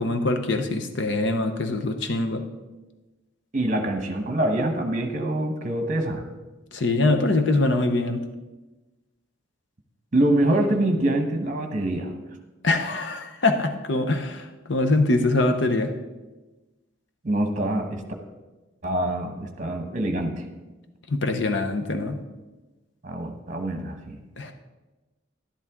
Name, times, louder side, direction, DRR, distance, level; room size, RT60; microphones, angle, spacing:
voice 1, 0.0-2.4 6.7-8.2 12.6-15.9 21.1-22.2 24.4-24.5, left 2 dB, 60° left, 7 dB, 0.8 m, -23 dB
voice 2, 3.5-6.2 10.1-12.1 17.2-18.0 18.8-20.4 23.0-24.2, right 1 dB, 40° right, 5 dB, 1.1 m, -25 dB
11.5 x 11.0 x 3.7 m, 1.2 s
head